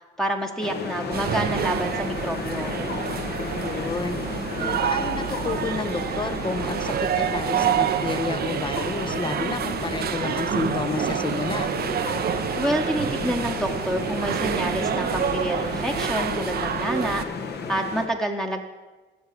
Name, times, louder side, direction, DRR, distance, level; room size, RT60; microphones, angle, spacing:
voice 1, 0.2-2.8 12.6-17.2 17.7-18.6, right 1 dB, 5° left, 1 dB, 1.0 m, -28 dB
sound 1, 0.6-18.1, left 5 dB, 55° left, 1.2 m, -33 dB
sound 2, 1.1-17.2, right 9 dB, 50° right, 0.5 m, -28 dB
voice 2, 3.4-4.2 4.6-11.7, left 4 dB, 25° left, 13 dB, 0.6 m, -31 dB
15.0 x 5.9 x 5.2 m, 1.3 s
cardioid pair, 90°, 20 cm